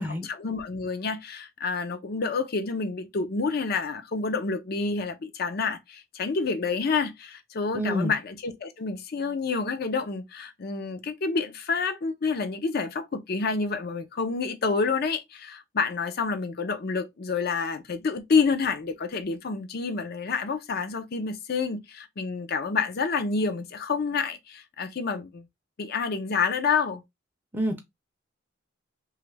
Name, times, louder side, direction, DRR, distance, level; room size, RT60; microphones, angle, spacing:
voice 1, 0.0-25.5 25.8-27.0, left 4 dB, 55° left, 0.5 m, -28 dB
voice 2, 7.7-8.1 27.5-27.8, equal, 10° right, 0.5 m, -27 dB
3.0 x 2.4 x 3.2 m
head